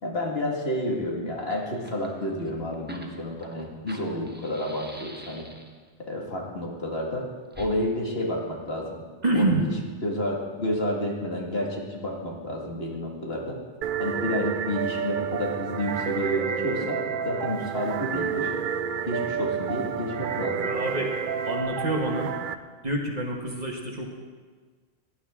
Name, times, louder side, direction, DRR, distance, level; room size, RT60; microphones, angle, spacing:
voice 1, 0.0-5.5 6.1-7.3 7.6-8.9 9.4-9.7 10.0-13.6 14.0-17.0 17.2-18.5 19.1-20.6, left 1 dB, 55° left, -1 dB, 2.2 m, -30 dB
Fire, 1.0-1.1 1.3-5.9 7.5-7.7, equal, 10° right, 1.1 m, -46 dB
voice 2, 9.2-9.7 20.6-21.1 21.4-22.3 22.8-24.2, right 2 dB, 35° right, 1 dB, 1.5 m, -27 dB
sound 1, 13.8-22.6, right 7 dB, 60° right, 0.6 m, -30 dB
18.0 x 11.0 x 3.7 m, 1.5 s
omnidirectional pair, 1.3 m